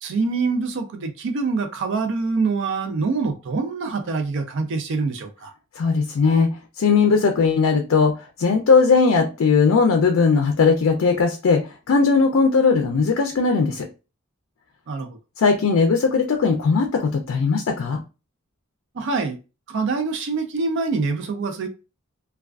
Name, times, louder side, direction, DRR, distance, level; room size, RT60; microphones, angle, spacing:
voice 1, 0.0-5.5 14.9-15.2 18.9-19.4 19.7-21.7, right 4 dB, 60° right, 0.4 m, -25 dB
voice 2, 5.8-6.5 6.8-8.1 8.4-11.6 11.9-13.9 15.4-18.0, left 4 dB, 80° left, 0.4 m, -18 dB
2.3 x 2.3 x 2.3 m
head